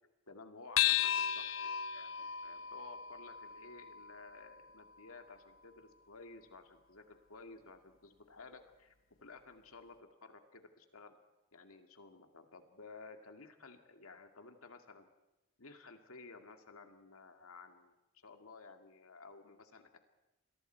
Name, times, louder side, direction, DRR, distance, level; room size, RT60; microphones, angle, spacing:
voice 1, 0.3-8.9 9.2-11.2 11.5-15.1 15.6-20.0, left 3 dB, 90° left, 6 dB, 2.2 m, -55 dB
sound 1, 0.8-5.5, left 11 dB, 70° left, 0.9 m, -36 dB
29.0 x 22.5 x 4.6 m, 1.0 s
head